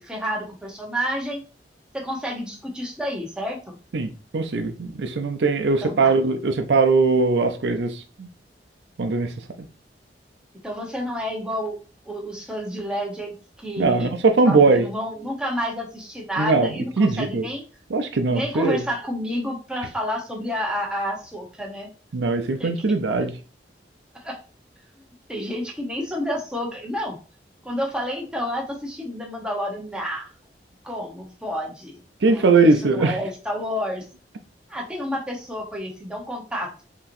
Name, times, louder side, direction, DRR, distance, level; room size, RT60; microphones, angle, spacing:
voice 1, 0.0-1.4 1.9-3.7 5.8-6.2 10.6-11.8 12.1-13.3 13.6-14.1 14.5-17.6 18.3-21.9 22.6-22.7 24.1-24.4 25.3-27.2 27.6-30.3 30.8-34.0 34.7-36.7, equal, 5° right, 0.9 m, -30 dB
voice 2, 3.9-7.9 9.0-9.3 13.8-14.8 16.4-16.7 17.0-17.4 17.9-18.8 22.1-23.3 32.2-33.2, right 3 dB, 80° right, 0.5 m, -20 dB
5.6 x 3.0 x 2.6 m
head